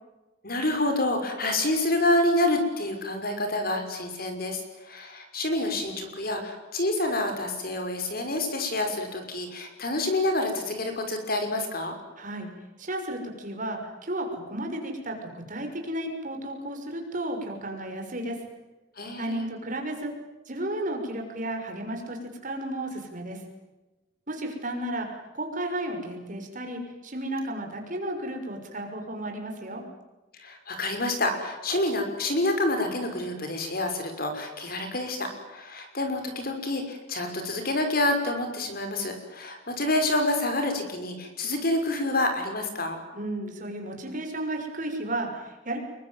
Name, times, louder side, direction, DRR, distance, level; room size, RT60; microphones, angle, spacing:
voice 1, 0.4-11.9 19.0-19.5 30.4-43.0, left 1 dB, 50° left, 6 dB, 6.0 m, -28 dB
voice 2, 12.2-12.5 12.8-18.4 19.2-20.1 20.5-23.4 24.3-29.8 43.1-45.8, right 1 dB, 40° right, 3 dB, 6.2 m, -33 dB
27.5 x 23.0 x 9.3 m, 1.1 s
head